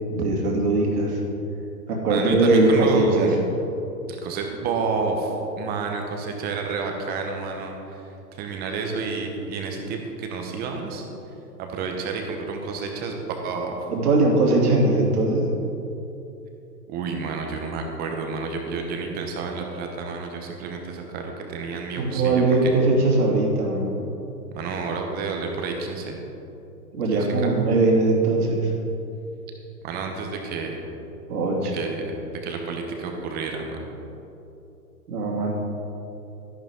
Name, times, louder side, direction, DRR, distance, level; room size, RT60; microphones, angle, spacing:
voice 1, 0.1-1.2 1.9-3.3 13.9-15.5 22.0-23.9 26.9-28.7 31.3-31.7 35.1-35.5, right 2 dB, 65° right, -1 dB, 2.8 m, -20 dB
voice 2, 2.1-3.4 4.1-11.0 11.6-13.8 16.9-22.8 24.5-26.2 27.1-27.6 29.8-30.8 31.7-33.9, right 4 dB, 20° right, 3 dB, 1.1 m, -30 dB
12.5 x 11.0 x 3.7 m, 2.9 s
hypercardioid pair, 135°, 50 cm